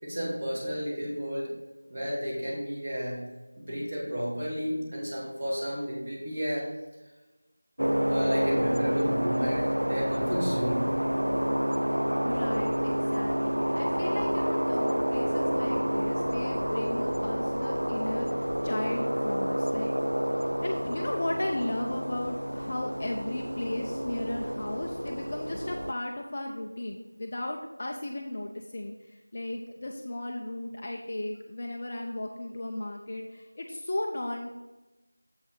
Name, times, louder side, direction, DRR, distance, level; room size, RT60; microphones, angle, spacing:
voice 1, 0.0-1.5 1.9-3.2 3.6-6.7 8.1-10.9, equal, 30° right, -5 dB, 2.5 m, -32 dB
sound 1, 7.8-25.9, equal, 80° right, 0.4 m, -29 dB
voice 2, 12.2-19.9 20.6-34.5, left 1 dB, 25° left, 1 dB, 0.5 m, -35 dB
7.8 x 6.1 x 4.3 m, 1.1 s
figure-of-eight pair, 175°, 0 cm